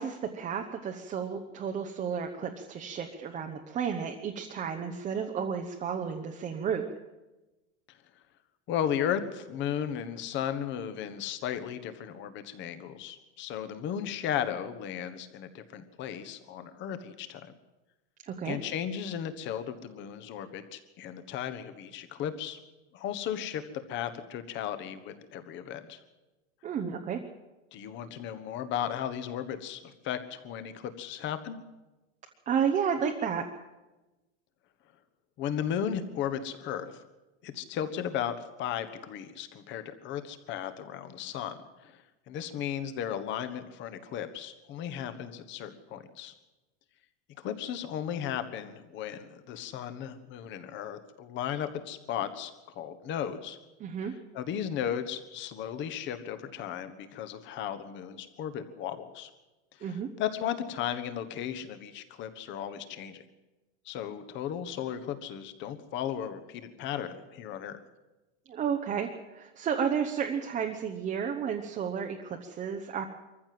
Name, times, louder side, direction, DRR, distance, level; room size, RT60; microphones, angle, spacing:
voice 1, 0.0-6.8 18.3-18.6 26.6-27.2 32.5-33.5 53.8-54.1 59.8-60.1 68.5-73.0, right 7 dB, 20° right, 3 dB, 1.0 m, -32 dB
voice 2, 8.7-17.5 18.4-22.6 22.9-23.6 23.9-26.0 27.7-31.6 35.4-37.0 37.4-46.3 47.4-53.6 54.0-59.3 59.8-63.2 63.8-67.8, left 9 dB, 30° left, 11 dB, 1.4 m, -35 dB
23.5 x 14.5 x 7.7 m, 1.1 s
supercardioid pair, 165°, 35 cm